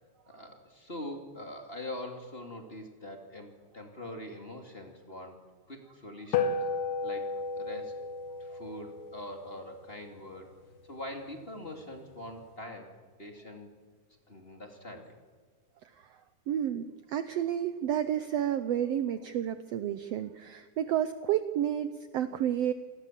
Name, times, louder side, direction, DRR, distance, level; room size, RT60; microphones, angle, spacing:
voice 1, 0.3-6.6 7.0-8.0 8.4-10.5 10.9-13.7 14.3-15.2, left 1 dB, 20° left, 3 dB, 2.5 m, -43 dB
sound 1, 6.3-11.0, left 4 dB, 70° left, 2.9 m, -34 dB
voice 2, 16.5-22.7, right 10 dB, 70° right, 11 dB, 1.6 m, -31 dB
28.0 x 20.0 x 7.5 m, 1.5 s
omnidirectional pair, 3.5 m